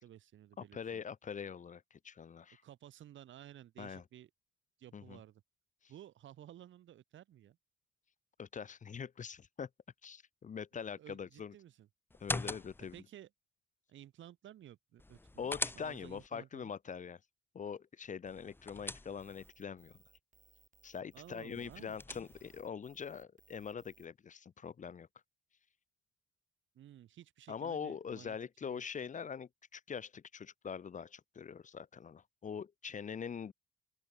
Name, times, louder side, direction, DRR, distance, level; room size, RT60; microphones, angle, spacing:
voice 1, 0.0-1.0 2.6-4.3 4.8-5.4 5.9-7.6 11.0-11.9 12.8-13.3 13.9-16.7 21.1-22.3 26.7-28.8, right 11 dB, 75° right, 3.7 m, -55 dB
voice 2, 0.6-2.6 3.8-4.0 4.9-5.2 8.4-9.7 10.0-11.5 12.2-12.9 15.4-17.2 17.5-20.0 20.8-25.1 27.5-33.5, left 6 dB, 40° left, 1.0 m, -43 dB
sound 1, 12.1-13.0 15.0-16.3 18.3-19.5 21.5-22.6, left 2 dB, 10° left, 0.8 m, -42 dB
sound 2, 19.2-24.1, right 6 dB, 40° right, 7.0 m, -67 dB
open air
cardioid pair, 90°, 20 cm